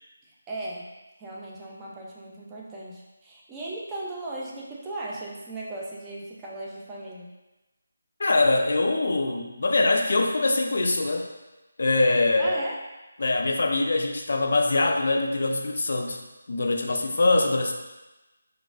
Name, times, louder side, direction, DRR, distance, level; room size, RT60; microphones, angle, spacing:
voice 1, 0.2-0.9 1.2-7.3 12.4-12.8, right 2 dB, 15° right, -4 dB, 0.5 m, -37 dB
voice 2, 8.2-11.3 11.8-12.6 13.2-16.2 16.5-17.7, left 2 dB, 60° left, 3 dB, 0.4 m, -23 dB
3.9 x 2.4 x 2.4 m, 1.1 s
figure-of-eight pair, 160°, 0 cm